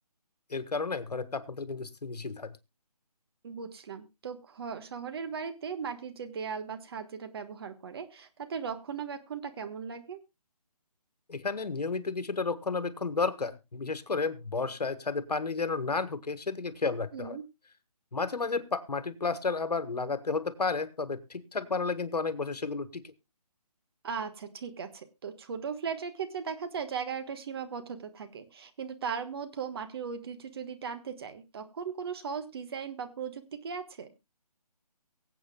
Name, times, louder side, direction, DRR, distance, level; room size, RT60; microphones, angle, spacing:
voice 1, 0.5-2.5 11.3-17.4 18.1-23.0, left 4 dB, 80° left, 12 dB, 1.5 m, -32 dB
voice 2, 3.4-10.2 17.1-17.4 24.0-34.1, right 6 dB, 40° right, 9 dB, 1.4 m, -38 dB
23.5 x 7.9 x 2.2 m, 0.24 s
figure-of-eight pair, 155°, 20 cm